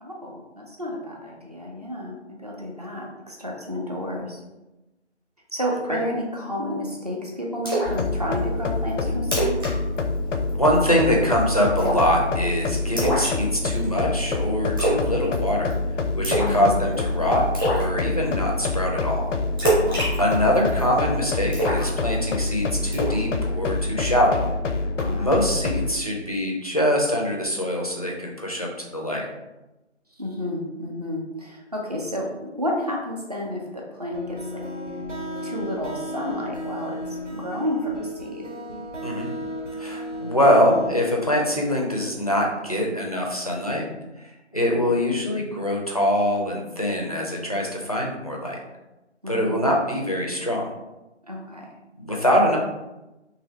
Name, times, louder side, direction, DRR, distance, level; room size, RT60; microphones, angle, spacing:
voice 1, 0.0-4.4 5.5-9.7 16.3-16.9 25.0-25.5 30.2-34.6 35.4-38.5 49.2-49.7 51.3-51.7, left 1 dB, 35° right, -2 dB, 0.5 m, -31 dB
Splash splatter, 7.7-8.0 8.4-8.5 8.9-9.0 9.2-9.7 10.0-10.2 10.5-10.9 11.8-12.1 13.0-13.8 14.8-15.1 15.3-15.7 16.2-16.6 16.9-17.0 17.5-17.8 19.6-20.9 21.5-22.4 22.9-23.2, right 1 dB, 20° right, 0.8 m, -24 dB
sound 1, 7.9-25.9, left 3 dB, 85° left, 0.5 m, -26 dB
voice 2, 10.5-15.7 16.2-19.3 20.2-24.5 25.2-29.3 39.0-39.3 39.8-43.9 44.5-48.6 49.3-50.7 52.0-52.6, equal, 35° left, -1 dB, 0.4 m, -23 dB
sound 2, 34.1-41.7, equal, 90° right, 1.0 m, -34 dB
2.7 x 2.6 x 3.0 m, 1.0 s
figure-of-eight pair, 160°, 36 cm